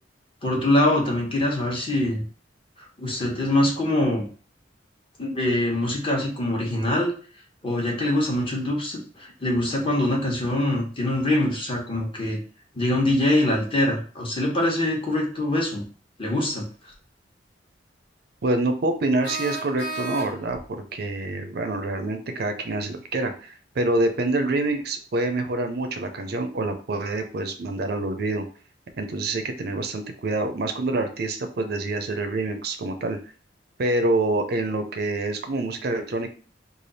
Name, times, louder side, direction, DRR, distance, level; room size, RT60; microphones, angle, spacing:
voice 1, 0.4-2.2 3.0-4.3 5.2-7.1 7.6-12.4 12.7-15.8 16.2-16.6, left 1 dB, 30° left, -1 dB, 1.0 m, -23 dB
sound 1, 16.9-17.0 19.2-20.7, right 2 dB, 60° left, 0.8 m, -33 dB
voice 2, 18.4-28.4 29.0-33.2 33.8-36.3, right 2 dB, 55° right, 7 dB, 0.5 m, -26 dB
3.3 x 2.4 x 4.0 m, 0.40 s
head